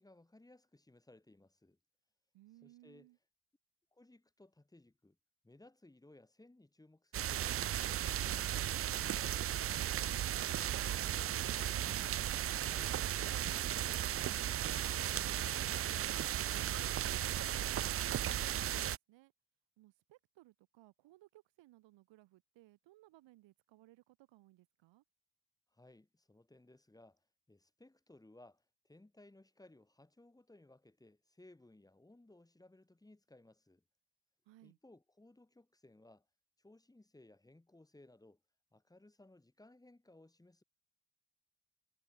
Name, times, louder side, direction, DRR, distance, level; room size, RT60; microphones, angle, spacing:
voice 1, 0.0-1.8 2.6-3.1 3.9-5.2 5.4-9.4 10.4-10.7 11.0-15.8 25.7-33.8 34.6-36.3 36.6-38.4 38.7-40.6, left 2 dB, 10° left, 4.5 m, -62 dB
voice 2, 2.3-3.2 10.1-10.4 19.8-25.0 34.5-34.8, right 17 dB, 85° right, 5.2 m, -63 dB
sound 1, 7.1-19.0, right 11 dB, 35° right, 0.5 m, -35 dB
cardioid pair, 145°, 43 cm